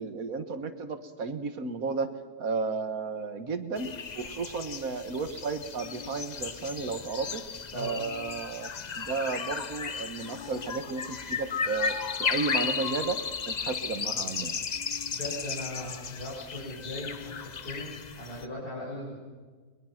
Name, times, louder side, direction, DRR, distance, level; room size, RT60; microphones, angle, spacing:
voice 1, 0.0-2.1 2.4-7.4 7.7-13.2 13.5-14.6, right 4 dB, 65° right, 10 dB, 1.8 m, -33 dB
sound 1, 3.8-18.5, left 6 dB, 40° left, 0.6 m, -35 dB
voice 2, 15.1-19.2, left 1 dB, 85° left, -7 dB, 6.0 m, -38 dB
22.0 x 21.0 x 5.9 m, 1.4 s
omnidirectional pair, 1.6 m